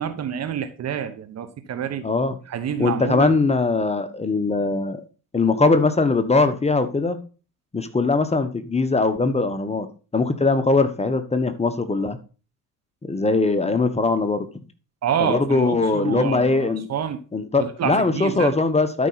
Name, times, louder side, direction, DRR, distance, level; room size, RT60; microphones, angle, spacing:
voice 1, 0.0-2.0 2.5-3.3 15.0-17.2 17.6-18.5, right 9 dB, 35° right, 10 dB, 1.1 m, -27 dB
voice 2, 2.0-2.3 2.8-5.0 5.3-7.2 7.7-9.9 10.1-12.2 13.0-14.5 15.2-16.9 17.3-19.1, left 3 dB, 15° left, 9 dB, 1.1 m, -21 dB
12.5 x 5.2 x 4.0 m, 0.36 s
figure-of-eight pair, 60°, 44 cm